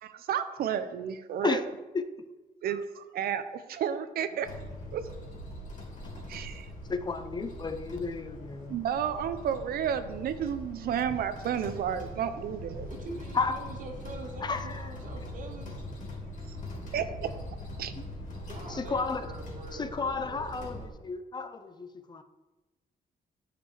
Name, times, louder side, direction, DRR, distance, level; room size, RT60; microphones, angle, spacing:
voice 1, 0.0-1.6 2.6-4.5 4.9-5.1 6.3-6.7 8.7-12.9 16.9-17.9, right 8 dB, 90° right, 0.6 m, -32 dB
sound 1, 4.4-20.9, left 1 dB, 55° left, 2.9 m, -42 dB
voice 2, 6.9-8.8 13.3-13.6 14.4-14.9 18.7-19.3 19.7-22.2, left 4 dB, 30° left, 0.6 m, -32 dB
voice 3, 12.9-15.8 18.5-20.9, right 2 dB, 60° right, 1.8 m, -44 dB
9.9 x 5.1 x 4.8 m
cardioid pair, 115°, 15 cm